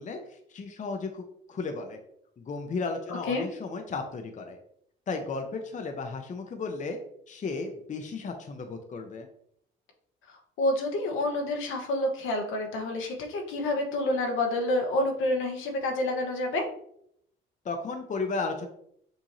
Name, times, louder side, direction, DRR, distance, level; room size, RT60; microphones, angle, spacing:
voice 1, 0.0-2.0 2.4-4.6 5.1-7.0 7.3-9.3 17.6-18.7, left 4 dB, 40° left, 5 dB, 0.7 m, -34 dB
voice 2, 3.1-3.5 10.3-16.6, left 1 dB, 85° left, 2 dB, 1.1 m, -28 dB
6.3 x 2.7 x 3.0 m, 0.70 s
cardioid pair, 90°, 20 cm